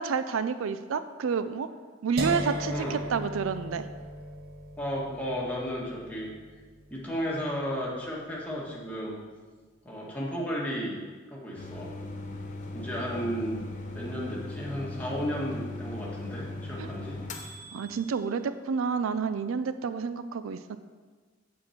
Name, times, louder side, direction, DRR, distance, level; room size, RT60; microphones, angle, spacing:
voice 1, 0.0-1.7 2.0-3.9 16.8-16.9 17.7-20.8, right 5 dB, 80° right, 11 dB, 0.4 m, -29 dB
sound 1, 2.2-8.1, right 1 dB, 50° right, 0.8 m, -37 dB
voice 2, 4.8-6.3 6.9-9.1 9.8-11.0 11.3-11.9 12.7-13.6 13.9-17.2, equal, 10° left, -5 dB, 1.6 m, -33 dB
sound 2, 11.6-18.1, left 2 dB, 40° left, 0.8 m, -39 dB
7.3 x 4.7 x 7.1 m, 1.4 s
head